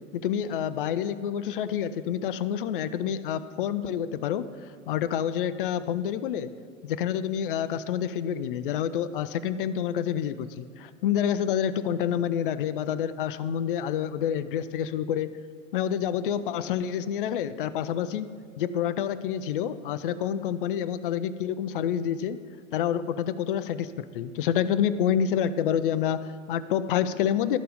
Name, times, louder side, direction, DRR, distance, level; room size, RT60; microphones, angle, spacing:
voice 1, 0.1-4.5 4.9-6.5 6.8-15.3 15.7-18.3 18.6-22.4 22.7-27.6, left 9 dB, 45° left, 14 dB, 0.4 m, -28 dB
12.5 x 4.5 x 5.0 m, 2.1 s
figure-of-eight pair, 105°, 40 cm